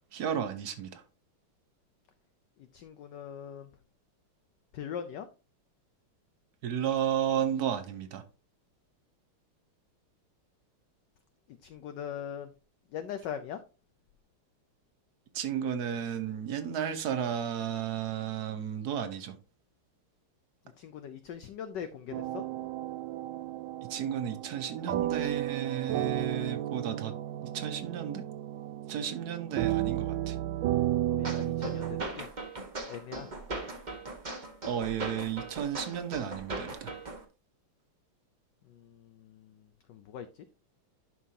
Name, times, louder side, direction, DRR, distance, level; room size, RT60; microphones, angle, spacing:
voice 1, 0.1-1.0 6.6-8.2 15.3-19.3 23.9-27.1 27.4-28.2 28.9-30.4 34.7-36.9, right 9 dB, 55° right, 1.2 m, -33 dB
voice 2, 2.7-3.7 4.7-5.3 11.5-12.5 12.9-13.6 20.8-22.4 31.1-32.3 32.9-33.3 38.7-40.5, left 8 dB, 70° left, 1.0 m, -41 dB
sound 1, 22.1-32.0, right 13 dB, 75° right, 1.1 m, -33 dB
sound 2, 31.2-37.2, right 2 dB, 25° right, 1.0 m, -39 dB
11.0 x 5.4 x 2.8 m
omnidirectional pair, 2.4 m